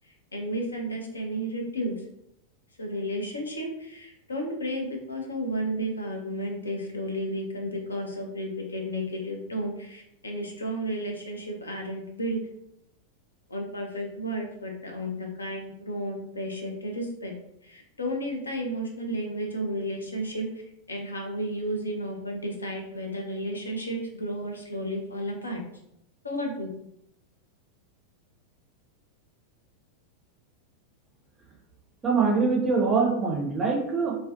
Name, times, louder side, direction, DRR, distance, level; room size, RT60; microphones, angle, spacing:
voice 1, 0.3-1.9 2.8-12.4 13.5-17.3 17.6-20.5 20.9-25.6 26.2-26.7, equal, 75° left, 1 dB, 0.5 m, -32 dB
voice 2, 32.0-34.2, right 4 dB, 20° right, -2 dB, 0.5 m, -24 dB
2.4 x 2.2 x 2.3 m, 0.77 s
figure-of-eight pair, 90°, 0 cm